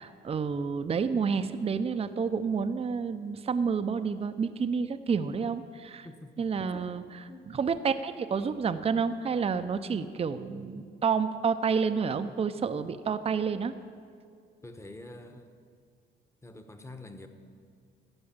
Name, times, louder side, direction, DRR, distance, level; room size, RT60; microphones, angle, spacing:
voice 1, 0.0-6.1 6.4-7.2 7.5-13.7, right 6 dB, 30° right, 10 dB, 0.5 m, -29 dB
voice 2, 6.0-6.9 7.3-7.5 14.6-15.5 16.4-17.3, left 2 dB, 15° left, 7 dB, 1.0 m, -47 dB
14.0 x 4.8 x 8.8 m, 2.2 s
cardioid pair, 90°, 20 cm